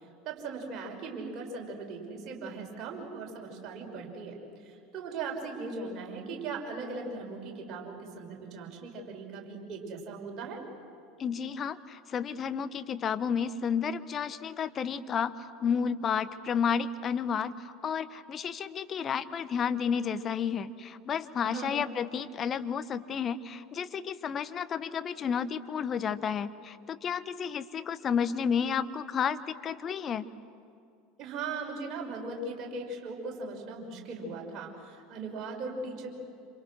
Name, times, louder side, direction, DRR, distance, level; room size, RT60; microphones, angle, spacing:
voice 1, 0.2-10.6 21.4-21.9 31.2-36.1, right 3 dB, 40° right, 0 dB, 5.9 m, -39 dB
voice 2, 11.2-30.2, left 7 dB, 35° left, 12 dB, 1.1 m, -31 dB
27.5 x 27.0 x 6.3 m, 2.4 s
figure-of-eight pair, 75°, 0 cm